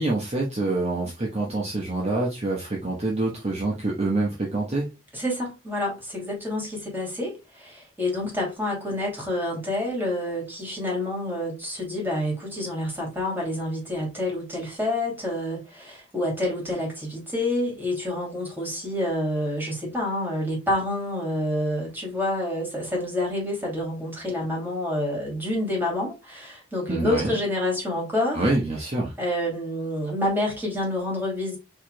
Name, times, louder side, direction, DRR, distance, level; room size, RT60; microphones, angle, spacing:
voice 1, 0.0-4.9 26.9-27.4 28.3-29.1, right 2 dB, 35° right, 1.1 m, -26 dB
voice 2, 5.1-28.4 29.2-31.6, left 1 dB, 10° right, 2.6 m, -28 dB
4.8 x 4.6 x 2.2 m
head